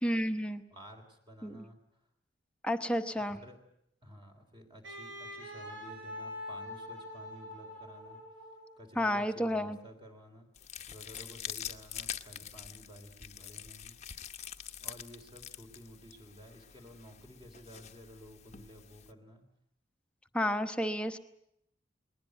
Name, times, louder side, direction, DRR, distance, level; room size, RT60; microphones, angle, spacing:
voice 1, 0.0-0.6 1.4-1.6 2.6-3.4 9.0-9.8 20.3-21.2, equal, 5° left, 7 dB, 1.1 m, -31 dB
voice 2, 0.7-1.8 3.1-3.6 4.0-8.2 8.8-10.5 10.9-14.0 14.8-19.4, equal, 25° right, 4 dB, 3.5 m, -52 dB
Wind instrument woodwind instrument, 4.8-8.9, left 1 dB, 80° right, 5.1 m, -44 dB
sound 1, 10.5-19.1, left 9 dB, 40° left, 0.9 m, -45 dB
20.5 x 19.0 x 9.2 m, 0.76 s
head